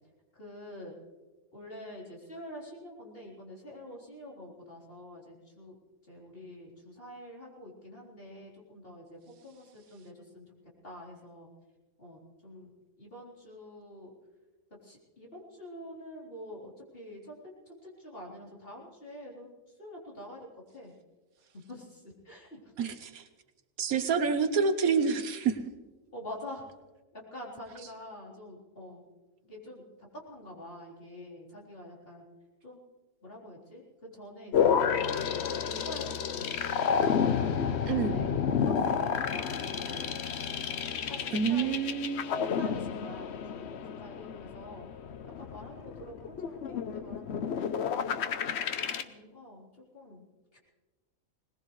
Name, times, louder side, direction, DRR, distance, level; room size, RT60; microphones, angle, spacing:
voice 1, 0.4-0.9 1.5-5.7 6.0-10.4 10.8-11.5 12.0-14.1 14.8-20.9 21.5-22.7 26.1-26.7 27.1-29.0 29.4-32.2 32.6-32.8 33.2-40.0 41.1-41.8 42.3-44.9 45.4-48.1 49.0-49.7 49.9-50.2 50.5-50.6, left 1 dB, 40° left, -4 dB, 4.1 m, -46 dB
voice 2, 22.8-23.2 23.8-25.6 37.9-38.3 41.3-42.5, right 5 dB, 80° right, 9 dB, 1.4 m, -28 dB
sound 1, 34.5-49.0, left 7 dB, 55° left, 0.9 m, -31 dB
20.5 x 20.0 x 3.2 m, 1.3 s
omnidirectional pair, 1.5 m